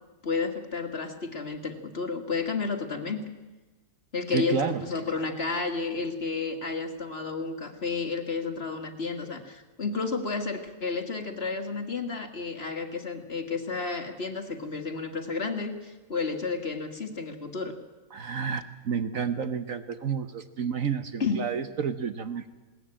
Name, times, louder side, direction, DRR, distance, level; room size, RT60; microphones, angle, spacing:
voice 1, 0.2-3.3 4.1-17.8 21.2-21.4, left 4 dB, 40° left, 5 dB, 1.7 m, -31 dB
voice 2, 4.3-4.8 18.1-22.5, right 6 dB, 55° right, 9 dB, 1.2 m, -30 dB
21.0 x 18.0 x 8.9 m, 1.2 s
omnidirectional pair, 1.8 m